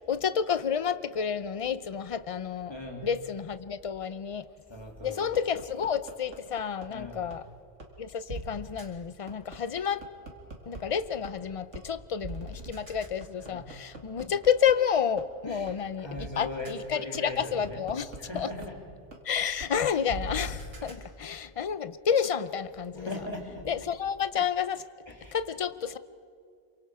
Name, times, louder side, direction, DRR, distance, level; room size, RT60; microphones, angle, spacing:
voice 1, 0.0-2.7 3.0-4.4 5.0-7.4 8.0-10.0 10.7-16.1 16.4-18.1 18.3-18.5 19.2-23.1 23.7-24.8 25.3-26.0, left 7 dB, 40° left, 14 dB, 0.5 m, -30 dB
voice 2, 2.7-3.1 4.7-5.3 6.9-7.3 13.4-13.7 15.4-18.8 20.8-21.0 22.9-23.7 25.1-25.4, left 1 dB, 20° left, 0 dB, 2.9 m, -40 dB
sound 1, 5.3-6.9 7.3-7.4 7.8-7.9 8.3-8.4 8.8-8.9 9.3-10.8 11.2-11.3 11.7-11.9 12.2-14.7 15.2-15.3 15.7-15.8 16.2-16.3 16.6-16.7 17.1-18.7 19.1-19.2 19.6-19.7 20.1-20.9, right 1 dB, 80° right, 2.5 m, -39 dB
27.0 x 24.0 x 4.8 m, 2.3 s
omnidirectional pair, 1.2 m